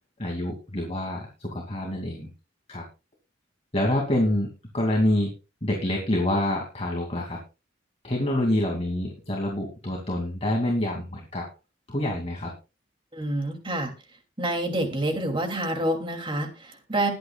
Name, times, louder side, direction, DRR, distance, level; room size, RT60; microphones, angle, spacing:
voice 1, 0.2-2.3 2.7-2.8 3.7-5.3 5.6-7.4 8.0-11.5 11.9-12.5, left 1 dB, 30° left, 0 dB, 2.6 m, -27 dB
voice 2, 13.1-13.9 14.4-17.1, right 1 dB, 25° right, 4 dB, 2.8 m, -27 dB
21.5 x 8.5 x 2.4 m, 0.30 s
head